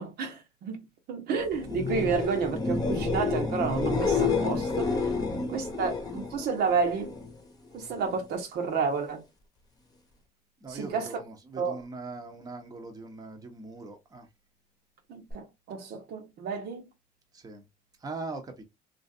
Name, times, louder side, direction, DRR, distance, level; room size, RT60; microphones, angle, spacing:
voice 1, 0.0-5.0 5.5-7.1 7.7-9.2 10.7-11.1 11.6-11.8 15.1-16.9, right 5 dB, 75° right, 1.0 m, -31 dB
sound 1, 1.6-7.3 7.7-8.2 15.3-15.4, left 4 dB, 25° left, 0.9 m, -29 dB
voice 2, 5.0-5.9 10.6-14.3 17.3-17.6 18.0-18.6, right 3 dB, 20° right, 0.8 m, -41 dB
3.0 x 2.5 x 2.7 m
cardioid pair, 110°, 17 cm